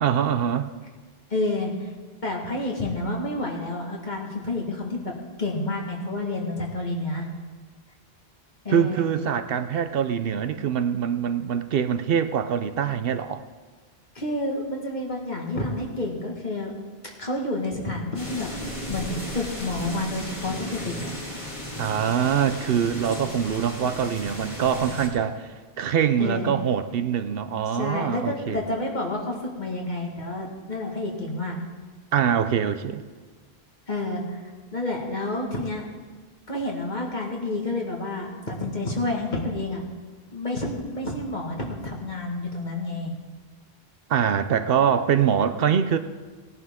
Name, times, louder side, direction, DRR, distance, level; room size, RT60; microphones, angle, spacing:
voice 1, 0.0-0.7 8.7-13.4 21.8-28.6 32.1-33.0 44.1-46.0, right 8 dB, 70° right, 10 dB, 0.8 m, -24 dB
voice 2, 1.3-1.9 2.2-5.1 5.4-7.3 8.6-9.0 14.2-16.7 17.2-21.1 26.2-26.6 27.7-31.6 33.9-34.4 34.7-35.9 36.5-39.8 40.3-43.1, left 2 dB, 45° left, 0 dB, 1.9 m, -29 dB
sound 1, 18.1-25.1, equal, 30° left, 2.1 m, -35 dB
18.5 x 11.0 x 3.6 m, 1.4 s
omnidirectional pair, 1.0 m